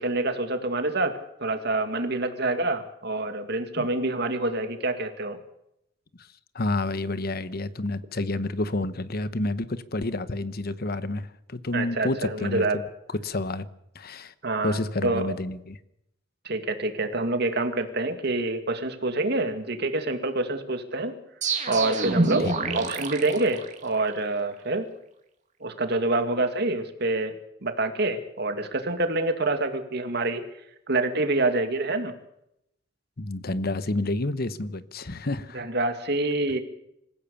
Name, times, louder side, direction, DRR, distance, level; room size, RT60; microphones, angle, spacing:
voice 1, 0.0-5.4 11.7-12.8 14.4-15.4 16.4-21.1 21.7-24.9 25.6-27.4 27.6-30.4 30.9-32.1 35.5-36.6, right 2 dB, 60° right, 7 dB, 2.3 m, -27 dB
voice 2, 6.5-12.8 13.2-13.7 13.9-14.3 14.6-15.8 22.4-22.9 33.2-35.7, left 2 dB, 55° left, 14 dB, 1.0 m, -29 dB
sound 1, 21.4-24.2, right 3 dB, 40° right, 2.4 m, -27 dB
26.5 x 15.5 x 7.1 m, 0.80 s
head